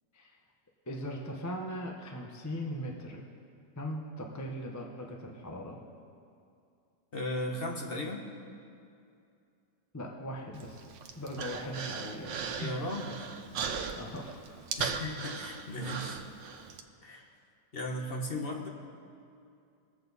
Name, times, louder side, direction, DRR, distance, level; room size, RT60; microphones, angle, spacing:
voice 1, 0.9-3.3 3.8-5.8 9.9-10.8 11.2-12.9 14.0-14.6, equal, 15° left, 0 dB, 0.5 m, -39 dB
voice 2, 7.1-8.3 12.6-13.2 14.8-16.2 17.0-17.3 17.7-18.7, left 1 dB, 35° left, 0 dB, 1.2 m, -36 dB
Human voice, 10.5-16.8, right 6 dB, 85° right, 1.4 m, -38 dB
21.0 x 7.7 x 4.0 m, 2.5 s
omnidirectional pair, 1.9 m